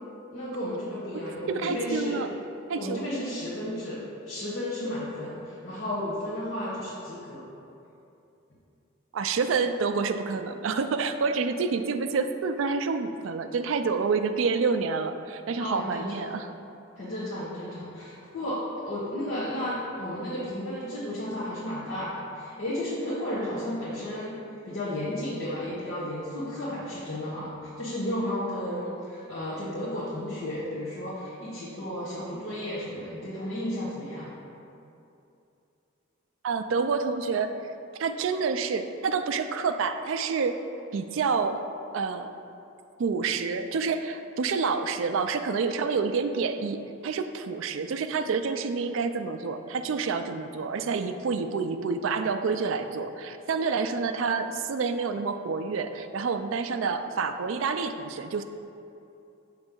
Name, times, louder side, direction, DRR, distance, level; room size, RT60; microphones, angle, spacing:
voice 1, 0.3-2.3 2.8-7.4 15.6-16.4 17.0-24.4 24.6-34.3, left 1 dB, 60° left, -11 dB, 1.3 m, -33 dB
voice 2, 1.5-2.3 2.7-3.1 9.1-16.5 36.4-37.5 38.0-40.6 40.9-41.6 41.9-42.3 43.0-58.4, right 5 dB, 70° right, 8 dB, 0.4 m, -28 dB
7.0 x 3.2 x 5.3 m, 2.7 s
head